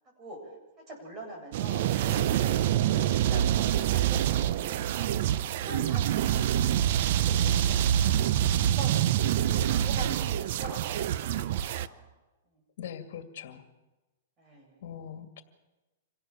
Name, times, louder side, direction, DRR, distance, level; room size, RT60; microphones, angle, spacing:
voice 1, 0.9-4.8 5.6-6.5 7.1-8.3 8.6-8.9 9.3-12.1 14.4-14.9, right 1 dB, 25° right, 1 dB, 7.8 m, -43 dB
sound 1, 1.5-11.9, right 11 dB, 55° right, 0.7 m, -26 dB
voice 2, 12.8-13.6 14.8-15.4, left 8 dB, 60° left, 8 dB, 2.3 m, -41 dB
26.0 x 17.5 x 7.3 m, 1.1 s
hypercardioid pair, 140°, 0 cm